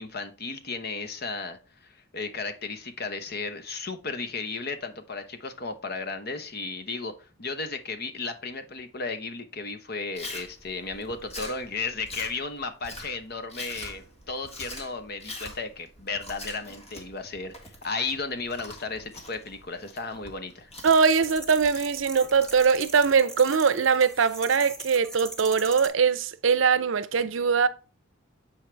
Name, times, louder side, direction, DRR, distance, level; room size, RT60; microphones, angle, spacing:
voice 1, 0.0-1.6 2.1-20.7, left 4 dB, 50° left, 0.9 m, -34 dB
Chewing mastication, 10.1-23.2, left 2 dB, 30° left, 1.7 m, -44 dB
sound 1, 20.8-25.9, right 2 dB, 5° left, 1.2 m, -40 dB
voice 2, 20.8-27.7, right 5 dB, 70° right, 0.6 m, -22 dB
7.6 x 4.6 x 3.3 m
head